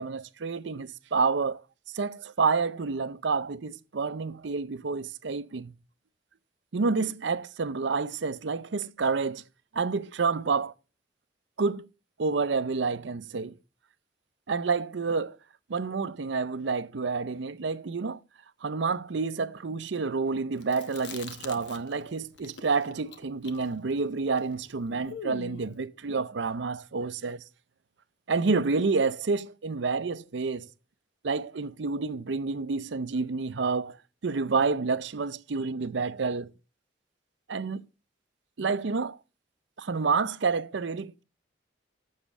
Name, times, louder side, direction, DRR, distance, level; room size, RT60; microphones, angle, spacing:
voice 1, 0.0-1.6 1.9-5.7 6.7-9.4 9.7-10.7 11.6-11.9 12.2-13.6 14.5-15.4 15.7-18.2 18.6-27.4 28.3-30.7 31.2-34.0 34.2-36.5 37.5-37.8 38.6-39.2 39.8-41.2, right 4 dB, 70° right, 0.6 m, -29 dB
Chewing mastication, 20.6-22.1 22.4-25.8, left 4 dB, 65° left, 1.0 m, -43 dB
7.3 x 7.2 x 7.1 m
head